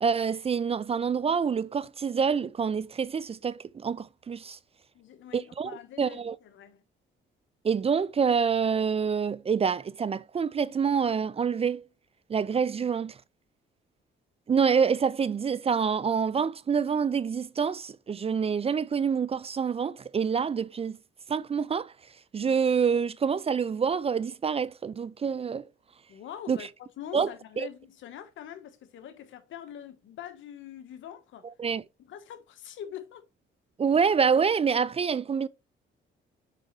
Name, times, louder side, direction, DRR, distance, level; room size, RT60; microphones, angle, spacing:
voice 1, 0.0-4.6 5.3-6.4 7.6-11.8 12.3-13.2 14.5-21.0 21.3-21.9 22.3-25.7 26.5-26.7 27.1-27.3 27.6-27.7 31.6-31.8 33.8-35.5, right 6 dB, 30° right, 0.4 m, -27 dB
voice 2, 4.9-6.8 26.1-26.7 27.0-31.5 32.1-33.3, left 10 dB, 75° left, 1.1 m, -44 dB
6.6 x 4.9 x 3.1 m
cardioid pair, 90°, 20 cm